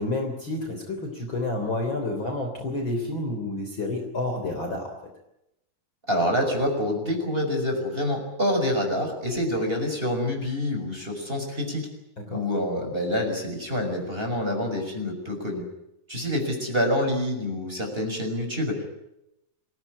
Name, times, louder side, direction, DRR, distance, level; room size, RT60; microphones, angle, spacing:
voice 1, 0.0-5.0 12.2-12.4, left 2 dB, 35° left, 3 dB, 4.0 m, -29 dB
voice 2, 6.1-11.9 12.3-15.6 16.1-18.9, left 1 dB, 15° right, 2 dB, 5.8 m, -27 dB
26.5 x 17.5 x 9.8 m, 0.86 s
omnidirectional pair, 4.2 m